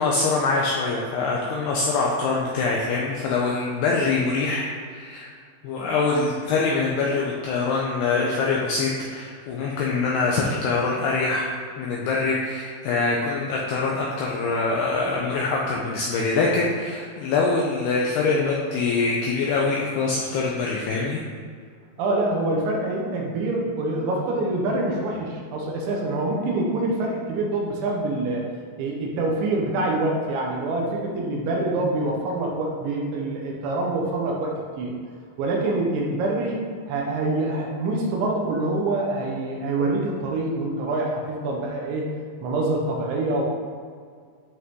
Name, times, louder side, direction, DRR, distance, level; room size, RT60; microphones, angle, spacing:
voice 1, 0.0-5.3 5.6-21.2, left 3 dB, 85° left, -3 dB, 2.3 m, -24 dB
voice 2, 22.0-28.4 28.8-35.0 35.4-42.1 42.4-43.4, right 2 dB, 75° right, -1 dB, 3.3 m, -25 dB
13.5 x 5.7 x 3.8 m, 2.1 s
omnidirectional pair, 5.7 m